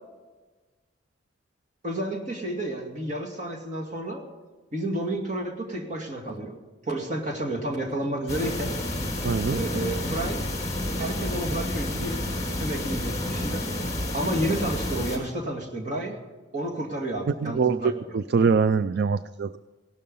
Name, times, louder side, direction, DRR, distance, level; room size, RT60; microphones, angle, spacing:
voice 1, 1.8-4.2 4.7-6.6 6.9-8.7 9.5-10.4 11.0-12.2 12.6-13.7 14.1-16.2 16.5-17.9, right 1 dB, 40° right, 1 dB, 2.3 m, -31 dB
sound 1, 8.3-15.2, left 1 dB, 20° left, 4.9 m, -30 dB
voice 2, 9.2-9.6 17.3-19.6, right 5 dB, 60° right, 14 dB, 0.4 m, -24 dB
17.5 x 12.5 x 5.5 m, 1.3 s
head